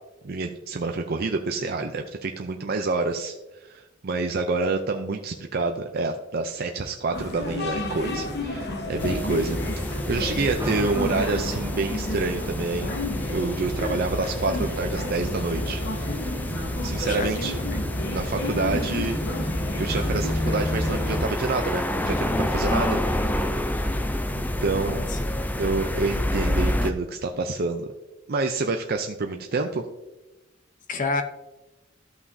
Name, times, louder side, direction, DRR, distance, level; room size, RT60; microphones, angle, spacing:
voice 1, 0.2-9.6 9.9-12.9 13.3-15.8 16.8-17.6 18.1-19.2 19.8-23.0 24.3-25.0 25.6-27.9 28.3-29.8, right 3 dB, 50° right, 4 dB, 0.5 m, -28 dB
sound 1, 7.1-21.2, left 1 dB, 55° left, 1.2 m, -30 dB
sound 2, 9.0-26.9, left 1 dB, 10° left, 0.4 m, -29 dB
sound 3, 10.6-21.7, equal, 15° right, 0.8 m, -41 dB
voice 2, 17.1-17.9 24.7-25.2 30.9-31.2, left 3 dB, 40° left, 8 dB, 0.8 m, -30 dB
13.0 x 5.7 x 2.7 m, 1.0 s
head